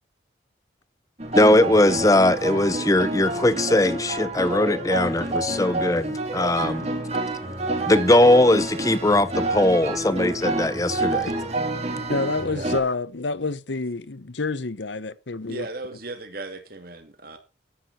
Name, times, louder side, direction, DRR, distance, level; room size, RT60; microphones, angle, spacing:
sound 1, 1.2-12.8, right 2 dB, 35° right, 3.2 m, -28 dB
voice 1, 1.3-6.9 7.9-11.3, left 1 dB, 20° left, 0.7 m, -20 dB
voice 2, 12.1-15.7, left 3 dB, 75° left, 0.9 m, -28 dB
voice 3, 15.4-17.4, right 2 dB, 50° right, 2.9 m, -36 dB
14.5 x 10.5 x 4.3 m
head